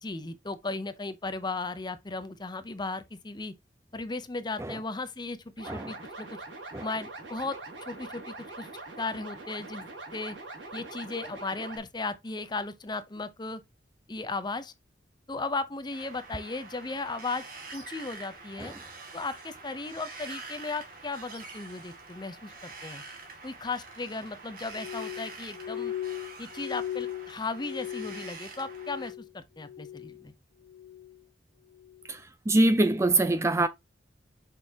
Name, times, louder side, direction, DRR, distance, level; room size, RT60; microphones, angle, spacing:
voice 1, 0.0-3.5 3.9-6.3 6.8-8.7 9.0-10.4 10.7-13.6 14.1-14.7 15.3-18.7 19.1-23.0 23.4-25.9 26.4-30.3, left 3 dB, 25° left, 0.7 m, -36 dB
sound 1, 5.6-11.8, right 2 dB, 90° right, 3.3 m, -43 dB
Wind, 15.9-29.1, right 3 dB, 55° right, 2.1 m, -46 dB
Glass, 24.7-29.3 29.6-30.3 30.6-31.2 31.8-32.1, left 11 dB, 85° left, 0.6 m, -38 dB
voice 2, 32.1-33.7, right 2 dB, 15° right, 0.4 m, -24 dB
6.4 x 5.3 x 2.8 m
head